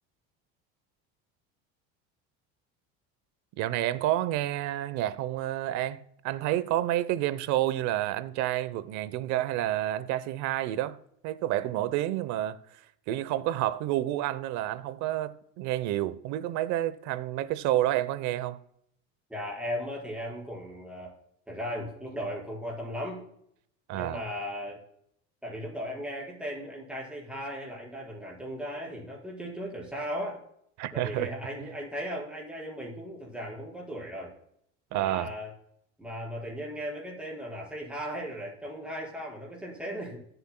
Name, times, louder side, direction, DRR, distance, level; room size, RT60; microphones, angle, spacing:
voice 1, 3.6-11.0 11.2-12.6 13.1-18.6 23.9-24.2 30.8-31.3 31.6-31.7 34.9-35.3, right 13 dB, 65° right, 0.8 m, -29 dB
voice 2, 19.3-21.1 21.5-23.2 23.9-24.8 25.4-30.4 30.9-34.3 34.9-35.5 36.0-40.2, equal, 5° right, 4.6 m, -37 dB
20.0 x 8.1 x 2.2 m
cardioid pair, 125°, 31 cm